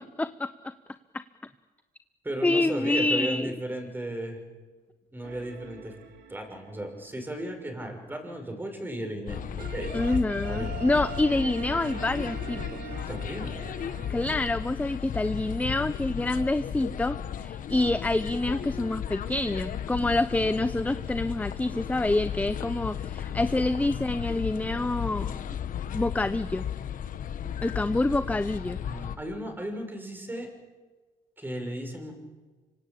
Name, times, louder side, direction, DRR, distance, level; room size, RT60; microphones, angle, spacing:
voice 1, 0.2-0.5 2.4-3.5 9.9-12.8 14.1-25.4 25.9-26.7 27.6-28.8, left 2 dB, 10° left, 12 dB, 0.8 m, -27 dB
voice 2, 2.2-4.4 5.1-5.9 6.3-9.9 10.5-10.8 13.1-13.6 20.3-20.5 28.8-30.5 31.4-32.1, right 1 dB, 10° right, 4 dB, 6.2 m, -35 dB
sound 1, 5.2-7.7 9.6-14.4, right 8 dB, 70° right, 3.5 m, -42 dB
sound 2, 9.3-29.2, left 9 dB, 50° left, 1.5 m, -35 dB
26.0 x 24.5 x 8.6 m, 1.3 s
cardioid pair, 110°, 17 cm